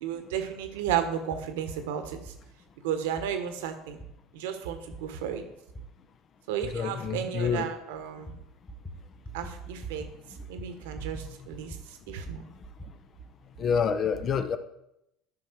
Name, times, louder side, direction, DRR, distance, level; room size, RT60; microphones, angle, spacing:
voice 1, 0.0-2.3 2.8-4.0 4.3-5.4 6.5-8.3 9.3-10.1 10.5-12.4, right 9 dB, 70° right, 7 dB, 1.3 m, -33 dB
sound 1, 1.3-1.5 2.2-2.4 3.2-3.3 4.0-4.1 4.9-5.0 5.7-5.8 6.6-6.7 7.4-7.6 8.3-8.4 8.7-9.0 9.2-9.5 9.8-10.1 10.4-11.3 11.5-12.9, right 2 dB, 20° left, 2.1 m, -42 dB
voice 2, 6.6-7.7 13.6-14.6, left 6 dB, 40° left, 11 dB, 0.9 m, -27 dB
13.0 x 5.8 x 4.7 m, 0.83 s
hypercardioid pair, 65°, 0 cm